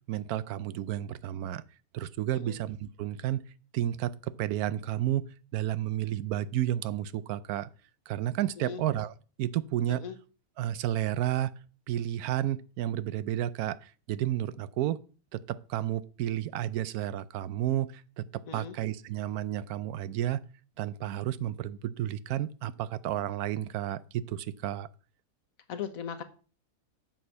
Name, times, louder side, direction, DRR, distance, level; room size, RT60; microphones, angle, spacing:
voice 1, 0.1-1.6 1.9-3.4 3.7-5.3 5.5-7.7 8.1-10.0 10.6-11.5 11.9-15.0 15.3-20.4 20.8-24.9, right 12 dB, 90° right, 1.1 m, -31 dB
voice 2, 25.7-26.2, left 7 dB, 70° left, 1.4 m, -38 dB
7.7 x 6.4 x 5.5 m
omnidirectional pair, 1.5 m